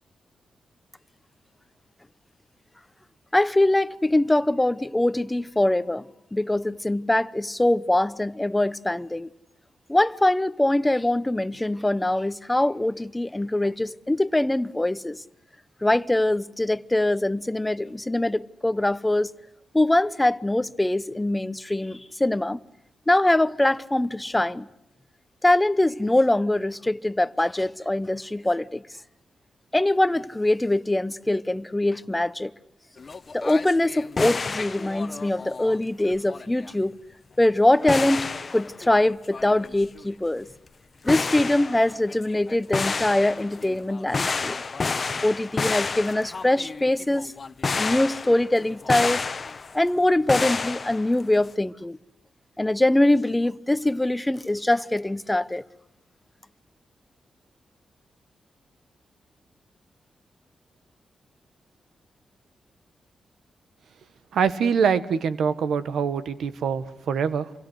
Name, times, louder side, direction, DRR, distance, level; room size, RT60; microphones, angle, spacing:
voice 1, 3.3-6.1 6.3-9.3 9.9-15.2 15.8-19.4 19.7-22.6 23.1-24.7 25.4-28.8 29.7-32.5 33.3-37.0 37.4-40.5 41.0-44.6 45.2-47.3 47.8-49.2 49.7-52.0 52.6-55.6, left 1 dB, 15° left, 0.9 m, -23 dB
sound 1, 33.0-35.8 36.0-36.7 37.7-40.1 40.5-40.7 41.0-49.9 50.3-51.5, left 4 dB, 45° left, 1.1 m, -30 dB
voice 2, 64.3-67.5, right 6 dB, 80° right, 1.4 m, -24 dB
28.5 x 23.5 x 8.1 m
cardioid pair, 55°, 0 cm